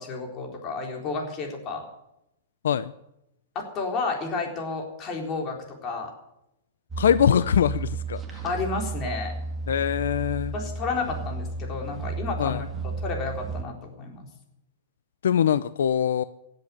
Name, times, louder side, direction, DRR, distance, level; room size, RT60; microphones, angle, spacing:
voice 1, 0.0-1.9 3.5-6.1 8.4-9.4 10.5-14.3, left 4 dB, 30° left, 2 dB, 4.0 m, -31 dB
sound 1, 6.9-13.6, right 3 dB, 10° right, 2.0 m, -33 dB
voice 2, 7.0-8.4 9.7-10.5 12.4-12.6 15.2-16.2, left 8 dB, 85° left, 15 dB, 0.6 m, -23 dB
17.0 x 8.0 x 9.9 m, 0.85 s
hypercardioid pair, 145°, 0 cm